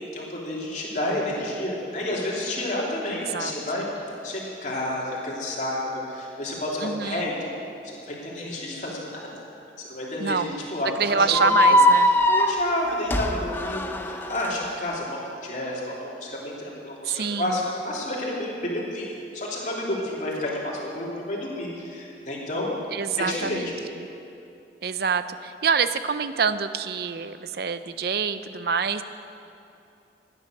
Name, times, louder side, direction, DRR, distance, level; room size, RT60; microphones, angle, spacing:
voice 1, 0.0-3.8 4.2-7.5 8.1-9.0 9.9-22.8 23.2-23.7, left 1 dB, 45° left, -5 dB, 3.2 m, -30 dB
voice 2, 6.8-7.3 10.2-10.6 11.0-12.1 17.1-17.6 22.9-23.7 24.8-29.0, right 5 dB, 60° right, 12 dB, 0.6 m, -26 dB
sound 1, 11.3-14.5, left 1 dB, 10° left, 0.6 m, -21 dB
16.0 x 9.9 x 6.7 m, 2.7 s
head